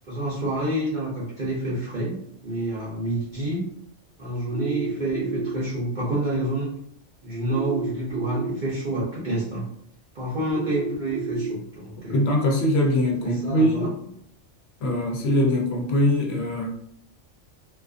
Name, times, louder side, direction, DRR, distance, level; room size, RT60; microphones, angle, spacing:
voice 1, 0.1-2.1 2.4-3.6 4.2-6.7 7.2-9.6 10.1-12.2 13.2-13.9, right 1 dB, 45° right, -8 dB, 0.7 m, -28 dB
sound 1, 4.5-5.5 7.5-8.5 10.5-11.5, right 5 dB, 70° right, 1.0 m, -30 dB
voice 2, 12.1-14.0 14.8-16.7, left 1 dB, 65° left, 0 dB, 0.7 m, -22 dB
2.4 x 2.4 x 2.4 m, 0.71 s
omnidirectional pair, 1.3 m